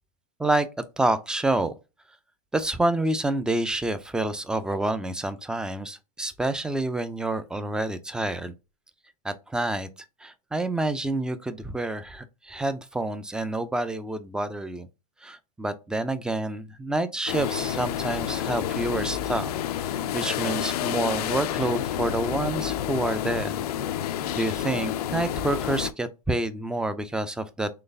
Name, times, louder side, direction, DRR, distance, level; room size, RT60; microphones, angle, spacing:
voice 1, 1.0-1.7 2.5-8.5 9.2-9.9 10.2-14.9 15.2-19.5 19.8-23.6 24.4-27.7, right 2 dB, 5° right, 0.3 m, -28 dB
sound 1, 17.3-25.9, left 10 dB, 85° left, 0.4 m, -29 dB
3.8 x 3.2 x 2.6 m
hypercardioid pair, 120°, 19 cm